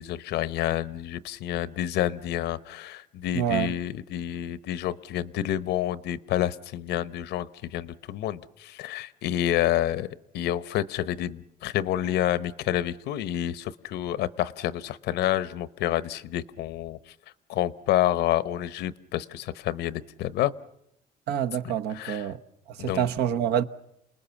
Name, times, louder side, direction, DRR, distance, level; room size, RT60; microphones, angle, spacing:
voice 1, 0.0-10.1 10.3-17.0 17.5-20.5 21.9-22.2 22.8-23.0, left 12 dB, 80° left, 0.9 m, -28 dB
voice 2, 3.3-3.8 21.3-22.4 22.7-23.6, right 9 dB, 75° right, 1.1 m, -27 dB
29.0 x 19.5 x 7.1 m
cardioid pair, 110°, 17 cm